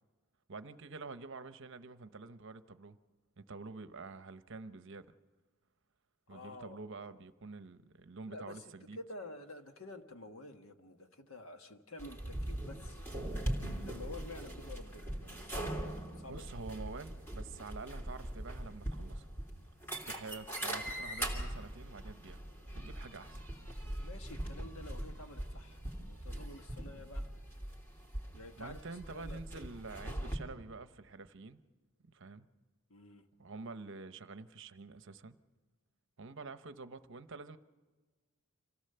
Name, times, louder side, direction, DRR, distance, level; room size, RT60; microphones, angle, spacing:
voice 1, 0.5-3.0 3.4-5.1 6.3-9.0 16.3-19.3 20.1-22.4 22.7-23.4 28.6-31.6 32.1-32.5 33.4-35.4 36.2-37.6, right 3 dB, 55° right, 11 dB, 0.8 m, -47 dB
voice 2, 6.3-6.8 8.3-8.6 8.9-13.0 13.8-16.5 24.0-25.8 26.1-27.3 28.3-28.8 29.1-29.4 32.9-33.2, left 2 dB, 65° left, 6 dB, 1.5 m, -50 dB
sound 1, 12.0-30.4, right 1 dB, 10° left, 3.0 m, -41 dB
26.5 x 17.0 x 6.8 m, 1.3 s
head